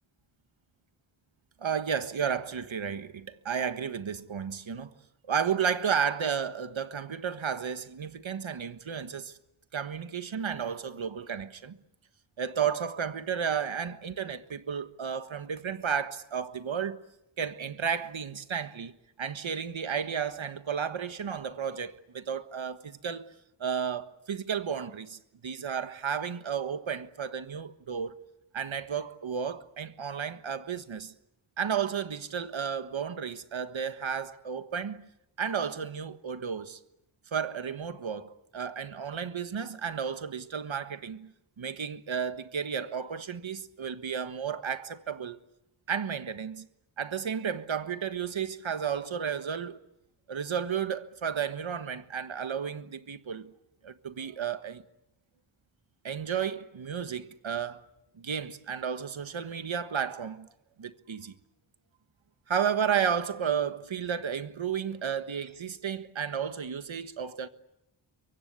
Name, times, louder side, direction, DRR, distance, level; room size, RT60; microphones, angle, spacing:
voice 1, 1.6-4.9 5.3-9.4 9.7-11.8 12.4-17.0 17.4-18.9 19.2-23.3 23.6-28.1 28.5-31.1 31.6-35.1 35.4-36.8 37.3-45.4 45.9-46.7 47.0-49.8 50.3-53.5 53.8-54.8 56.0-57.8 58.2-60.5 60.8-61.3 62.5-67.5, right 7 dB, 85° right, 1.5 m, -33 dB
28.0 x 23.5 x 8.3 m
cardioid pair, 50°, 46 cm